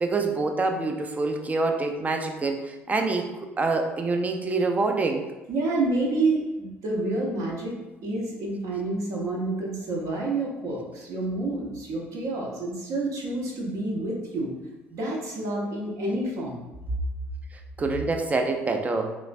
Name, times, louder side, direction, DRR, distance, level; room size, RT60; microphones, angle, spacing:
voice 1, 0.0-3.3 3.6-5.3 17.8-19.1, right 3 dB, 20° right, 4 dB, 0.5 m, -26 dB
voice 2, 5.5-7.8 8.0-14.5 14.9-16.6, right 2 dB, 50° right, -2 dB, 0.9 m, -28 dB
3.2 x 3.0 x 2.5 m, 1.1 s
figure-of-eight pair, 55°, 7 cm